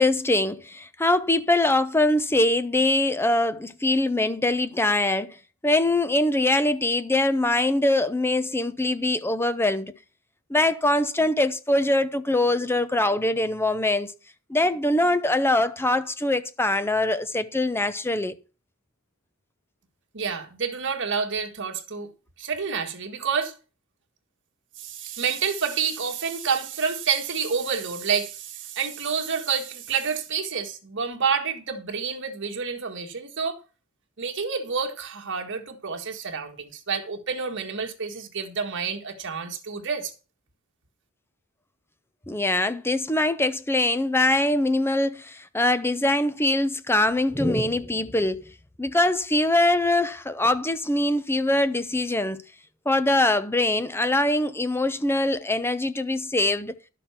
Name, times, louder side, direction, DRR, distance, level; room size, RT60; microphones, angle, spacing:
voice 1, 0.0-5.4 5.6-9.9 10.5-14.1 14.5-18.3 42.3-48.5 48.8-52.4 52.9-56.7, left 2 dB, 10° left, 0.8 m, -23 dB
voice 2, 20.1-22.1 22.4-23.5 24.8-33.6 34.2-40.1, right 6 dB, 60° right, 1.8 m, -28 dB
12.0 x 6.7 x 5.7 m
head